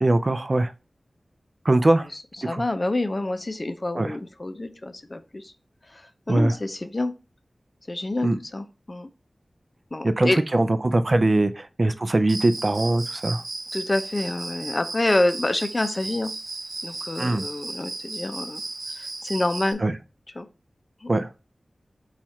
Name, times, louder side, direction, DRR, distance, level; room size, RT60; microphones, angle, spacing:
voice 1, 0.0-0.7 1.7-2.1 2.4-2.6 3.9-4.2 6.3-6.6 8.2-8.4 10.0-13.4 17.2-17.4 19.8-19.9 21.1-21.3, right 2 dB, 45° right, 11 dB, 0.4 m, -21 dB
voice 2, 2.5-5.5 5.9-7.1 7.9-9.1 9.9-10.4 13.7-16.3 16.8-18.6 18.9-19.8 20.4-20.5 21.0-21.1, left 2 dB, 35° left, 9 dB, 0.5 m, -27 dB
Cricket, 12.3-19.7, right 3 dB, 85° right, 0.7 m, -35 dB
4.3 x 2.4 x 4.2 m, 0.31 s
wide cardioid pair, 70°, 0 cm